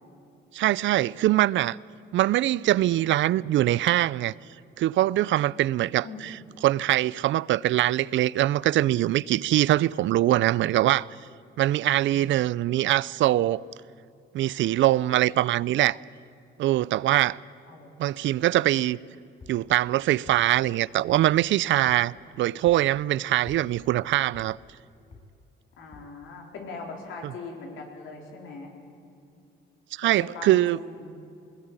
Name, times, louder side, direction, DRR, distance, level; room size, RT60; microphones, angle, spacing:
voice 1, 0.5-1.8 2.1-4.3 4.8-11.1 11.6-13.6 14.3-16.0 16.6-17.4 18.0-19.0 19.5-24.6 27.2-27.3 29.9-30.8, right 14 dB, 70° right, 0.5 m, -23 dB
voice 2, 6.0-6.4 11.8-12.3 17.7-17.9 25.8-28.7 30.3-31.1, left 3 dB, 80° left, 4.3 m, -41 dB
sound 1, 19.4-19.6 20.3-20.4 21.1-21.2 21.9-22.0 22.7-22.8 23.5-23.6 24.3-24.5 25.1-25.2 25.9-26.1, left 4 dB, 35° left, 8.0 m, -47 dB
20.5 x 20.0 x 9.0 m
cardioid pair, 90°, 20 cm